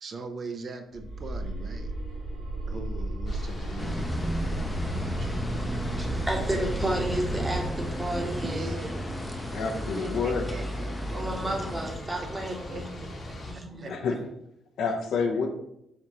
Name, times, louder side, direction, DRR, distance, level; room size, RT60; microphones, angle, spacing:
voice 1, 0.0-1.9 2.7-5.4 8.4-9.3 10.0-11.2 12.4-13.3 13.8-13.9, right 3 dB, 50° right, 6 dB, 0.4 m, -41 dB
sound 1, 0.9-9.8, right 2 dB, 85° right, 1.2 m, -36 dB
sound 2, 3.3-13.5, left 1 dB, 45° left, 1.0 m, -39 dB
sound 3, 3.8-12.0, equal, 5° left, 0.5 m, -33 dB
voice 2, 6.0-8.8 11.1-13.1 13.4-13.9, right 1 dB, 20° right, 2 dB, 0.9 m, -32 dB
voice 3, 9.5-10.6 13.9-14.3 14.8-15.5, left 5 dB, 70° left, 3 dB, 0.6 m, -28 dB
4.3 x 2.5 x 3.0 m, 0.80 s
supercardioid pair, 65°, 0 cm